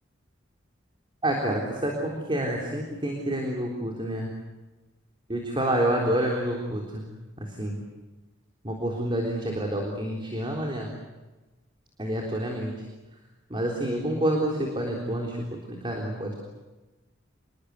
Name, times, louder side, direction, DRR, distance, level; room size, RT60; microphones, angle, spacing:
voice 1, 1.2-4.3 5.3-7.0 7.4-7.8 8.6-10.9 12.0-12.7 13.5-16.3, right 1 dB, 25° right, 0 dB, 3.8 m, -28 dB
28.5 x 21.5 x 8.4 m, 1.1 s
head